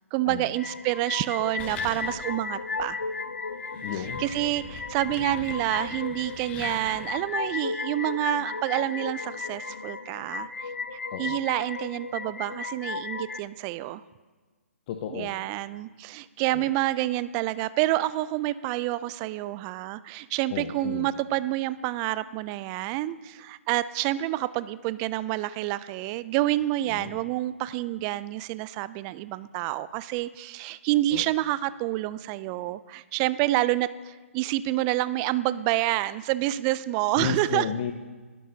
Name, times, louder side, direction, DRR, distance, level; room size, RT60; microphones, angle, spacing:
voice 1, 0.1-3.0 4.2-10.5 11.2-14.0 15.1-37.7, right 16 dB, 25° right, 16 dB, 0.4 m, -28 dB
sound 1, 0.6-13.4, left 4 dB, 80° left, 0.7 m, -35 dB
sound 2, 1.6-2.4 2.8-2.9 3.5-7.3, left 5 dB, 20° left, 1.3 m, -42 dB
voice 2, 3.8-4.2 5.0-5.1 11.1-11.4 14.9-15.3 16.5-16.6 20.5-21.1 26.8-27.2 31.1-31.3 37.2-37.9, left 8 dB, 35° left, 5 dB, 0.9 m, -33 dB
22.0 x 12.5 x 2.8 m, 1.3 s
figure-of-eight pair, 135°, 8 cm